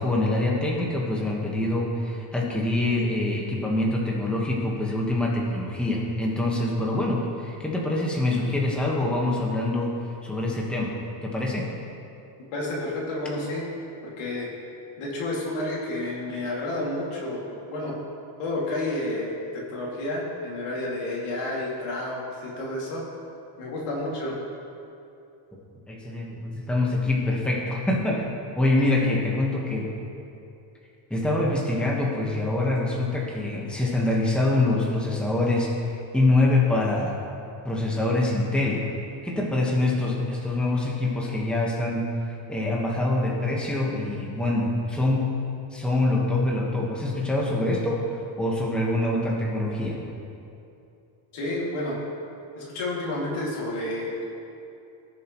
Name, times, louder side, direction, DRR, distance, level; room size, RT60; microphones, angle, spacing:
voice 1, 0.0-9.9 10.2-10.9 11.2-11.7 25.9-28.3 28.6-29.9 31.1-37.2 37.6-38.9 39.2-42.1 42.5-45.3 45.7-50.0, left 2 dB, ahead, -3 dB, 1.4 m, -25 dB
voice 2, 12.5-13.7 14.0-14.5 15.0-18.0 18.4-23.0 23.6-24.4 28.8-28.9 51.3-52.0 52.6-54.2, left 1 dB, 80° left, -4 dB, 2.6 m, -30 dB
17.5 x 7.1 x 3.1 m, 2.7 s
cardioid pair, 145°, 50 cm